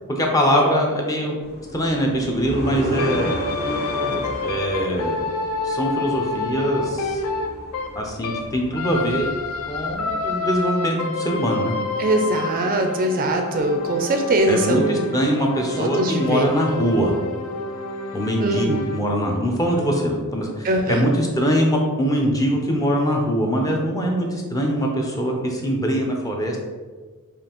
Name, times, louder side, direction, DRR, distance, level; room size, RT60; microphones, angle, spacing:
voice 1, 0.1-1.4 1.7-3.4 4.4-5.3 5.6-7.2 8.0-9.3 9.7-11.7 14.5-17.1 18.1-26.6, equal, 15° left, 0 dB, 0.5 m, -22 dB
sound 1, 1.4-10.4, equal, 45° left, 1.2 m, -34 dB
sound 2, 3.0-8.5 8.7-19.0, left 3 dB, 65° left, 0.4 m, -29 dB
voice 2, 12.0-15.1 15.8-16.5 18.4-18.8 20.6-21.1, right 1 dB, 40° right, 4 dB, 0.4 m, -21 dB
5.0 x 2.4 x 2.9 m, 1.4 s
head